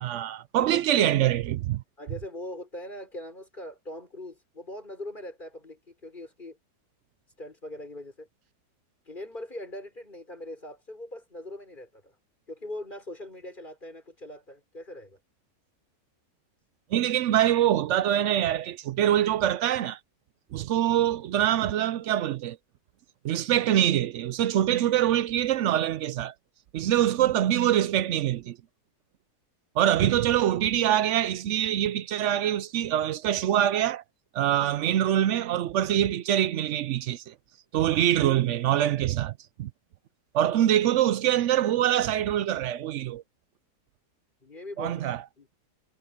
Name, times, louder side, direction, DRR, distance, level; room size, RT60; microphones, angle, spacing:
voice 1, 0.0-1.8 16.9-20.0 20.5-22.6 23.2-26.3 26.7-28.6 29.8-34.0 34.3-37.3 37.7-39.3 39.6-39.7 40.3-43.2 44.8-45.2, right 11 dB, 70° right, 0.7 m, -24 dB
voice 2, 0.6-1.1 2.0-6.6 7.4-8.3 9.1-12.1 12.5-15.2 44.4-45.0 45.4-45.5, left 1 dB, 30° left, 5.8 m, -41 dB
omnidirectional pair, 1.7 m